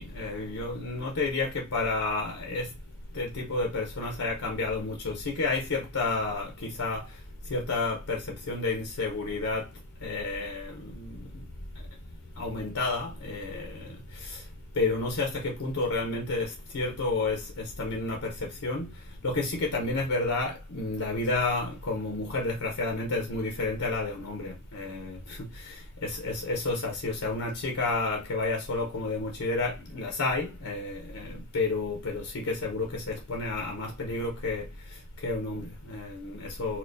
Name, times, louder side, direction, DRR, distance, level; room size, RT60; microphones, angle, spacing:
voice 1, 0.0-2.7 3.1-7.0 7.5-9.7 10.0-11.2 12.4-14.4 14.8-18.9 19.2-34.7 35.2-36.8, left 3 dB, 75° left, 0.7 m, -31 dB
4.4 x 2.2 x 2.6 m
head